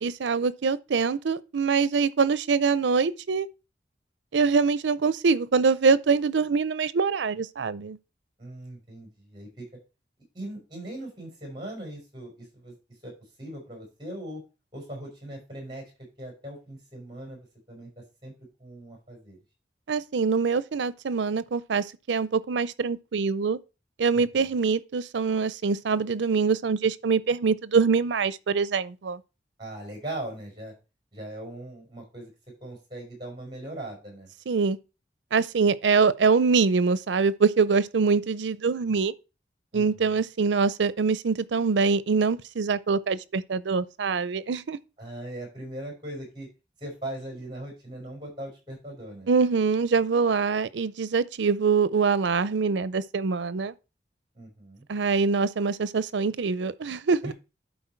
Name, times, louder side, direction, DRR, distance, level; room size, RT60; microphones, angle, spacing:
voice 1, 0.0-3.5 4.3-8.0 19.9-23.6 24.0-29.2 34.5-34.8 35.3-39.1 39.7-44.8 49.3-53.7 54.9-57.3, right 5 dB, 85° right, 0.5 m, -24 dB
voice 2, 8.4-9.6 10.3-12.7 13.0-13.1 13.4-14.4 14.7-15.9 16.2-17.9 18.2-18.3 18.6-19.4 24.1-24.4 29.6-30.7 31.1-32.3 32.6-34.3 39.7-40.2 45.0-46.5 46.8-49.3 54.3-54.8 57.2-57.3, right 1 dB, 25° right, 4.9 m, -39 dB
11.5 x 4.4 x 4.5 m
head